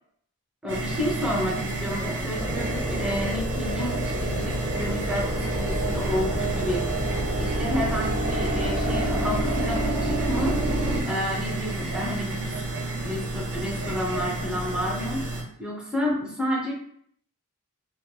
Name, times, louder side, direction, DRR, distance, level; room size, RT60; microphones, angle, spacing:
voice 1, 0.6-6.9 7.4-10.6 11.0-12.6 13.0-15.3 15.6-16.7, left 1 dB, 5° right, -4 dB, 0.6 m, -30 dB
sound 1, 0.7-15.4, right 2 dB, 55° right, 0.8 m, -30 dB
sound 2, 2.4-11.0, right 1 dB, 25° right, 0.9 m, -28 dB
3.1 x 2.8 x 2.2 m, 0.64 s
head